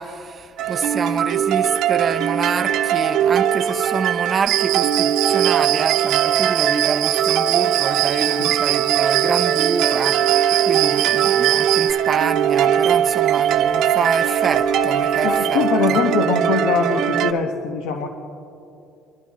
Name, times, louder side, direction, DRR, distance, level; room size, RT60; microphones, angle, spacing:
voice 1, 0.0-15.6 15.9-16.0, right 6 dB, 25° right, 0.5 m, -27 dB
sound 1, 0.6-17.3, right 9 dB, 55° right, 0.8 m, -20 dB
Cricket, 4.5-11.9, right 16 dB, 75° right, 0.5 m, -23 dB
voice 2, 15.2-18.1, left 5 dB, 85° left, 1.1 m, -22 dB
25.5 x 12.5 x 3.1 m
cardioid pair, 155°, 0 cm